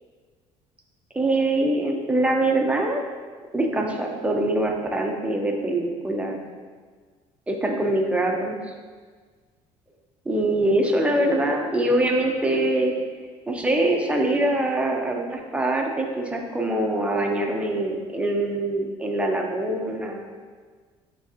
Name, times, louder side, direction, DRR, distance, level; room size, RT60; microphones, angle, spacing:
voice 1, 1.1-3.0 3.5-6.4 7.5-8.6 10.2-12.9 13.5-20.4, right 1 dB, 10° right, 1 dB, 0.9 m, -23 dB
9.4 x 3.8 x 2.9 m, 1.5 s
cardioid pair, 105°, 13 cm